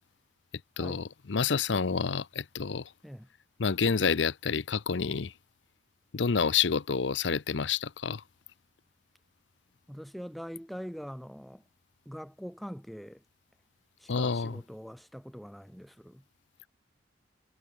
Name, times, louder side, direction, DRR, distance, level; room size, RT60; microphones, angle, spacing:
voice 1, 0.8-2.9 3.6-5.3 6.1-8.2 14.1-14.6, left 5 dB, 70° left, 0.7 m, -28 dB
voice 2, 9.9-11.6 12.0-13.2 14.0-16.2, equal, ahead, 3.1 m, -43 dB
head